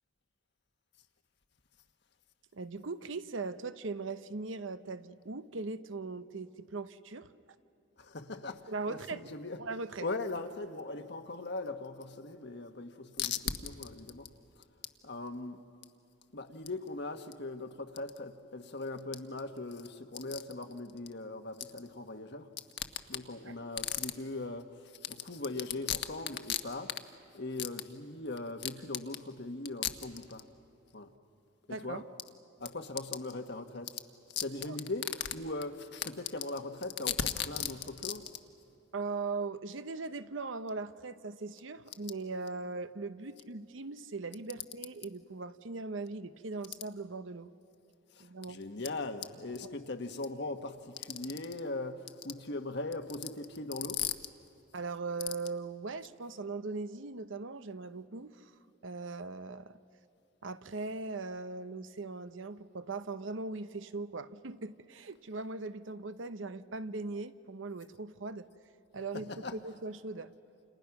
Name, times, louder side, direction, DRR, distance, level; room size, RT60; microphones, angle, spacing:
voice 1, 2.5-7.3 8.7-9.3 9.6-10.1 31.7-32.0 34.7-34.8 38.9-47.5 48.2-48.6 54.7-58.5 58.8-59.8 60.4-68.5 68.9-70.3, right 3 dB, 80° right, 0.8 m, -39 dB
voice 2, 8.0-9.6 10.0-14.6 15.0-15.6 16.3-22.5 22.8-30.4 30.9-31.1 31.7-32.0 32.6-34.0 34.3-38.3 48.1-54.2 69.1-69.6, left 4 dB, 60° left, 1.4 m, -38 dB
29.5 x 28.5 x 6.0 m
head